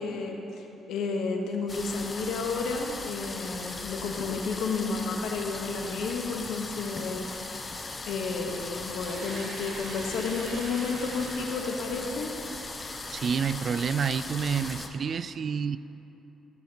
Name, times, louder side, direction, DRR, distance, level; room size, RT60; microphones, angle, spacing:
voice 1, 0.0-7.3 8.1-12.3, left 4 dB, 80° left, 2 dB, 1.1 m, -32 dB
sound 1, 1.7-14.9, left 3 dB, 30° left, 0.8 m, -38 dB
sound 2, 8.8-12.8, right 2 dB, 85° right, 1.4 m, -45 dB
voice 2, 13.1-15.8, right 6 dB, 50° right, 14 dB, 0.3 m, -28 dB
15.5 x 7.1 x 2.9 m, 2.9 s
cardioid pair, 90°, 0 cm